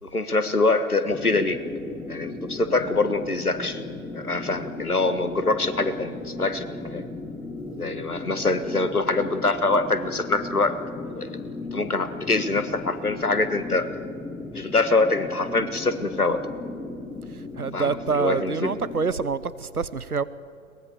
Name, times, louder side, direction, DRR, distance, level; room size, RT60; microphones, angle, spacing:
voice 1, 0.0-1.6 2.1-3.8 4.1-7.0 7.8-10.8 11.1-11.4 11.7-13.9 14.5-16.4 17.7-18.7, left 3 dB, 90° left, 1.6 m, -24 dB
sound 1, 1.1-19.1, left 2 dB, 5° left, 1.2 m, -36 dB
voice 2, 17.3-20.2, right 5 dB, 90° right, 1.0 m, -27 dB
22.5 x 20.0 x 7.1 m
figure-of-eight pair, 110°, 43 cm